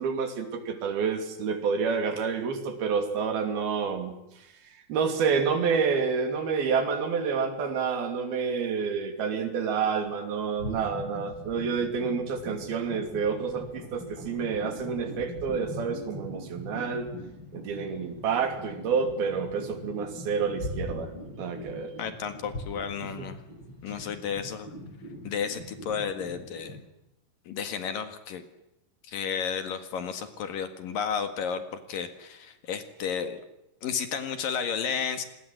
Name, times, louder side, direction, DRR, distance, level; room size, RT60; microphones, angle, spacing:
voice 1, 0.0-4.1 4.9-17.1 17.5-22.0 23.2-23.3, right 6 dB, 70° right, 7 dB, 4.7 m, -29 dB
sound 1, 9.9-10.1 10.4-26.8, left 1 dB, 30° left, 8.2 m, -41 dB
voice 2, 22.0-23.4 23.8-24.7 25.2-26.8 27.5-28.4 29.1-33.4 33.8-35.2, left 7 dB, 65° left, 8 dB, 3.3 m, -32 dB
26.0 x 21.0 x 7.8 m, 0.89 s
omnidirectional pair, 4.5 m